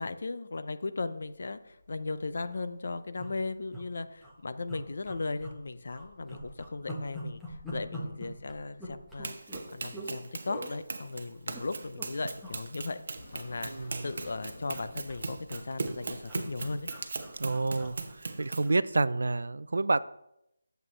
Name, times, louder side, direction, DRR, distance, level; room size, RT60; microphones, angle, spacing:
voice 1, 0.0-9.3 9.7-16.9, left 3 dB, 50° left, 12 dB, 0.6 m, -37 dB
sound 1, 1.7-1.9 2.2-2.3 2.4-2.7 3.2-3.8 4.2-4.3 4.7-5.6 5.9-10.1 10.5-10.7 11.3-12.1 12.4-12.6 12.8-14.0 14.3-18.8 19.1-19.3, equal, ahead, 0.9 m, -44 dB
Run, 9.2-18.7, right 3 dB, 45° right, 0.9 m, -39 dB
sound 2, 13.1-15.4, left 1 dB, 30° left, 1.6 m, -51 dB
voice 2, 17.4-18.0 18.4-20.0, right 3 dB, 70° right, 17 dB, 0.4 m, -28 dB
11.0 x 8.0 x 3.2 m, 0.83 s
figure-of-eight pair, 175°, 0 cm